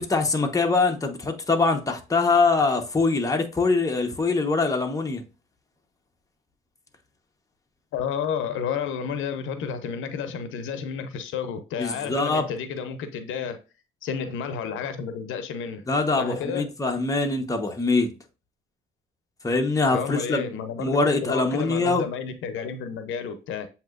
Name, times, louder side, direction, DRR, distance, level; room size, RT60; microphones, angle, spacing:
voice 1, 0.0-5.2 11.8-12.4 15.9-18.1 19.4-20.4 20.8-22.1, left 3 dB, 15° left, 1.0 m, -23 dB
voice 2, 7.9-13.6 14.0-15.8 16.2-16.7 19.9-23.7, left 7 dB, 85° left, 0.7 m, -31 dB
7.5 x 2.9 x 2.4 m
cardioid pair, 90°, 20 cm